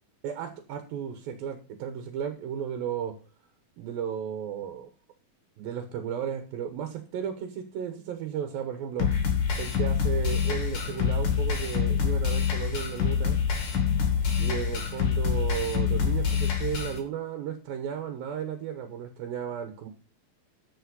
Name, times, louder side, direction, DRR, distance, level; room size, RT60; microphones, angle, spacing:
voice 1, 0.2-3.1 3.8-4.9 5.6-9.1 9.6-13.4 14.4-19.9, right 8 dB, 80° right, 7 dB, 3.0 m, -34 dB
sound 1, 9.0-17.0, left 7 dB, 60° left, 4.1 m, -26 dB
12.5 x 5.6 x 5.5 m, 0.34 s
omnidirectional pair, 4.2 m